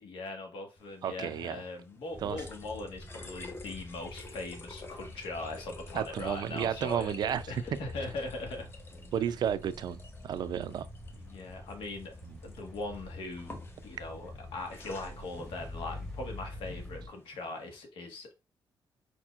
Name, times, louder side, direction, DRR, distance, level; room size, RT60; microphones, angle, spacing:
voice 1, 0.0-8.7 11.2-12.1 12.4-13.6 13.8-18.3, left 2 dB, 80° left, 1.4 m, -40 dB
sound 1, 0.8-17.8, left 3 dB, 25° left, 0.7 m, -52 dB
voice 2, 1.0-1.6 2.2-2.4 5.9-7.4 9.1-10.9, right 9 dB, 55° right, 0.4 m, -32 dB
sound 2, 2.1-17.1, left 1 dB, 5° left, 1.0 m, -46 dB
4.6 x 4.4 x 2.3 m
cardioid pair, 160°, 9 cm